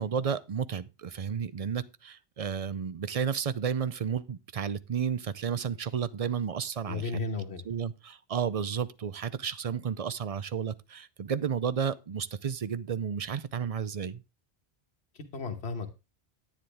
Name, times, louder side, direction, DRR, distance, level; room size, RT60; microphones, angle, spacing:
voice 1, 0.0-7.1 7.7-14.2, right 7 dB, 45° right, 0.5 m, -32 dB
voice 2, 6.8-7.6 15.1-15.9, left 3 dB, 80° left, 1.5 m, -34 dB
10.0 x 9.6 x 3.4 m
omnidirectional pair, 1.1 m